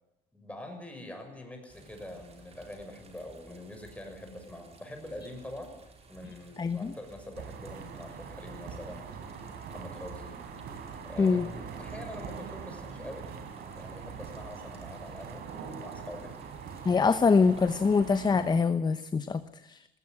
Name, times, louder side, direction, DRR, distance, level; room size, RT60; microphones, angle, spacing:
voice 1, 0.3-5.7 6.1-9.0 9.7-10.4 11.0-11.5 11.8-13.3 13.7-15.4 15.8-16.3, left 1 dB, 10° left, 4 dB, 6.8 m, -44 dB
sound 1, 1.7-18.4, right 3 dB, 40° right, 4.8 m, -56 dB
voice 2, 6.6-6.9 11.2-11.5 16.8-19.9, left 5 dB, 25° left, 12 dB, 0.9 m, -24 dB
sound 2, 7.3-18.6, right 6 dB, 70° right, 4.1 m, -43 dB
19.5 x 16.5 x 9.7 m, 0.95 s
cardioid pair, 110°, 17 cm